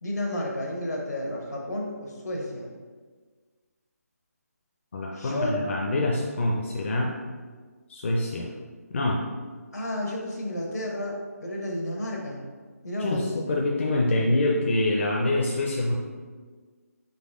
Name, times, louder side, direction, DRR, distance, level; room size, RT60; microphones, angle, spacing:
voice 1, 0.0-2.7 5.1-5.6 9.7-12.4 12.8-13.3, left 1 dB, 85° left, -1 dB, 1.2 m, -31 dB
voice 2, 4.9-7.1 7.9-8.5 8.9-9.2 13.0-15.9, left 2 dB, 45° left, -1 dB, 0.5 m, -25 dB
4.0 x 3.3 x 3.6 m, 1.5 s
figure-of-eight pair, 160°, 9 cm